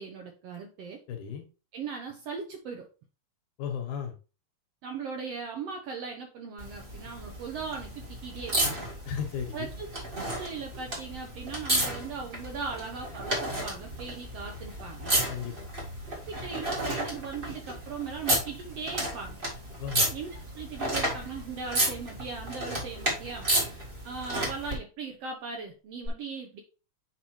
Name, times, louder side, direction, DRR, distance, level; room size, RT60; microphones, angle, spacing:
voice 1, 0.0-1.0 1.7-2.9 4.8-8.8 9.5-10.0 10.4-15.2 16.3-19.4 20.1-23.5 24.0-26.6, right 5 dB, 70° right, 2 dB, 1.6 m, -38 dB
voice 2, 1.1-1.5 3.6-4.1 9.1-9.7 15.3-15.7 19.8-20.1, left 7 dB, 70° left, 5 dB, 2.5 m, -35 dB
sound 1, 6.6-24.7 26.0-26.1, right 1 dB, 30° right, 1.0 m, -32 dB
8.2 x 4.8 x 3.1 m, 0.33 s
omnidirectional pair, 3.7 m